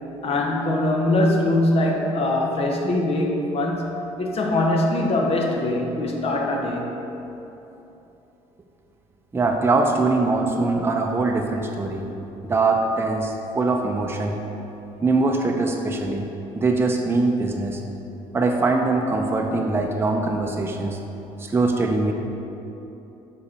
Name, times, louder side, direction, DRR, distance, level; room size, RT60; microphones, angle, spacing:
voice 1, 0.2-6.9, left 1 dB, 50° left, 1 dB, 1.0 m, -22 dB
voice 2, 9.3-12.1 12.4-14.4 15.0-16.3 16.5-17.8 18.3-21.0 21.4-22.1, right 3 dB, 20° right, 2 dB, 0.6 m, -22 dB
6.2 x 4.7 x 4.2 m, 3.0 s
supercardioid pair, 80°, 13 cm